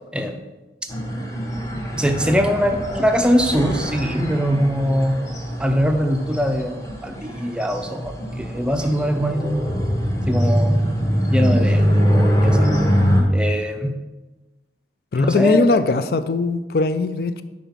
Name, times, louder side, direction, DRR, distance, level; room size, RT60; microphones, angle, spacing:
sound 1, 0.9-13.2, equal, 20° left, 1.0 m, -22 dB
voice 1, 2.0-5.2 5.6-9.6 10.3-10.8 11.3-12.7 13.2-14.0 15.1-15.7, equal, 5° right, 0.5 m, -22 dB
voice 2, 15.1-17.4, left 3 dB, 55° left, 0.4 m, -20 dB
5.4 x 4.9 x 5.8 m
head